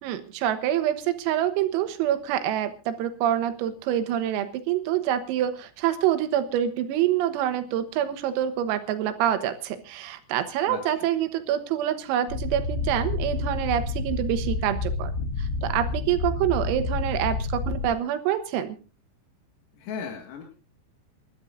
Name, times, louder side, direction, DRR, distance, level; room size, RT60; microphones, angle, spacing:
voice 1, 0.0-15.1 15.4-18.8, right 11 dB, 85° right, 9 dB, 4.0 m, -26 dB
sound 1, 12.3-17.9, left 3 dB, 50° left, 1.3 m, -29 dB
voice 2, 19.8-20.4, left 6 dB, 80° left, 2 dB, 4.6 m, -36 dB
28.5 x 13.0 x 2.6 m, 0.33 s
omnidirectional pair, 6.0 m